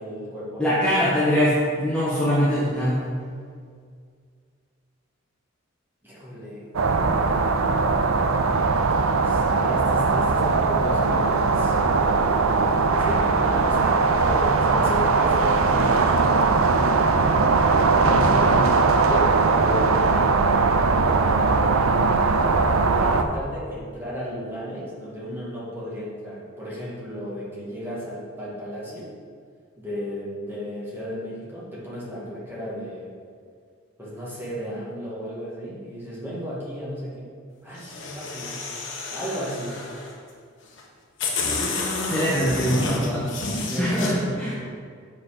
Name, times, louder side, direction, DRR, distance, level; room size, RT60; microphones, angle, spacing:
voice 1, 0.0-0.8 6.0-6.7 9.1-12.1 13.0-16.6 16.9-20.4 20.9-21.8 23.0-29.1 29.8-33.1 34.0-37.3 37.6-38.6 39.1-39.8 43.6-44.7, equal, 10° right, -8 dB, 2.1 m, -34 dB
voice 2, 0.6-3.0 42.0-43.3 43.8-44.5, equal, 5° left, -12 dB, 1.6 m, -22 dB
sound 1, 6.7-23.2, right 4 dB, 85° right, 0.6 m, -20 dB
sound 2, 37.8-40.1 40.8-40.9 41.2-44.1, left 3 dB, 60° left, 1.3 m, -29 dB
7.7 x 5.8 x 5.1 m, 2.1 s
head